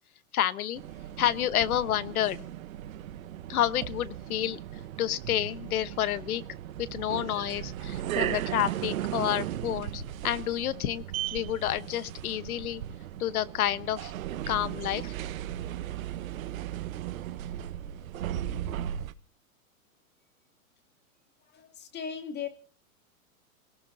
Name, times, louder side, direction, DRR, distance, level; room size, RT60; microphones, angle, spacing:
voice 1, 0.3-0.8 1.2-2.4 3.5-4.6 5.0-6.4 6.8-11.0 11.3-12.8 13.2-14.1 14.5-15.1, left 12 dB, 75° left, 17 dB, 1.1 m, -29 dB
sound 1, 0.7-19.1, right 11 dB, 65° right, 1.1 m, -36 dB
voice 2, 21.4-22.5, left 7 dB, 25° left, 7 dB, 2.4 m, -37 dB
29.5 x 18.5 x 2.7 m, 0.39 s
hypercardioid pair, 135°, 44 cm